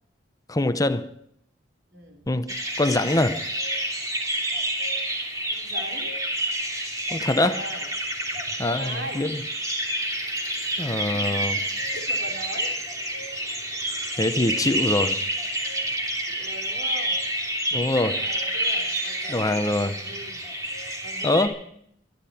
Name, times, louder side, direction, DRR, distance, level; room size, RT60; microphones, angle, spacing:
voice 1, 0.5-1.1 2.3-3.4 7.1-7.7 8.6-9.4 10.8-11.6 14.2-15.2 17.7-18.2 19.3-19.9 21.2-21.6, left 2 dB, 20° left, 0.8 m, -24 dB
voice 2, 1.9-2.2 5.5-6.1 7.5-7.9 8.8-9.3 11.9-12.7 16.3-17.2 18.1-20.4 21.0-21.5, right 1 dB, 70° right, 3.5 m, -40 dB
sound 1, 2.5-21.5, right 1 dB, 20° right, 3.0 m, -29 dB
25.0 x 12.0 x 4.3 m
head